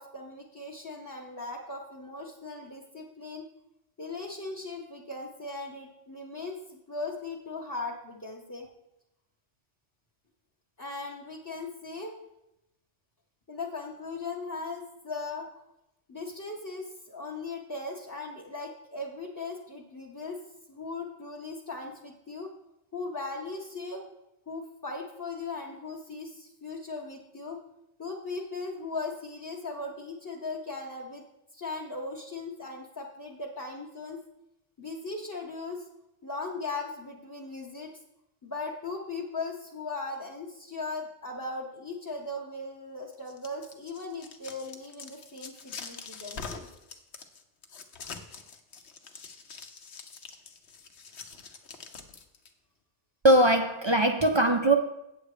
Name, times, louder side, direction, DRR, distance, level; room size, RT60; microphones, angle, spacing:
voice 1, 0.0-3.5 4.0-8.7 10.8-12.1 13.5-15.5 16.1-20.4 20.7-22.5 22.9-24.0 24.5-27.6 28.0-31.2 31.5-34.2 34.8-35.9 36.2-37.9 38.4-46.7, left 3 dB, 20° left, -1 dB, 0.8 m, -38 dB
sound 1, 43.1-52.5, left 5 dB, 65° left, 1.1 m, -44 dB
voice 2, 53.2-54.7, right 1 dB, 40° right, 5 dB, 0.4 m, -21 dB
8.5 x 7.6 x 4.9 m, 0.87 s
omnidirectional pair, 1.2 m